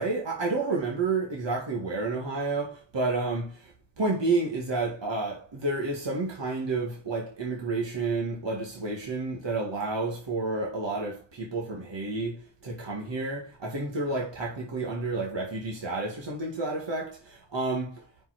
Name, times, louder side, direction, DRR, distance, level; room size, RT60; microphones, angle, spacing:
voice 1, 0.0-3.6 4.0-18.0, right 3 dB, 75° right, 2.0 m, -30 dB
5.5 x 5.4 x 6.1 m
cardioid pair, 40°, 44 cm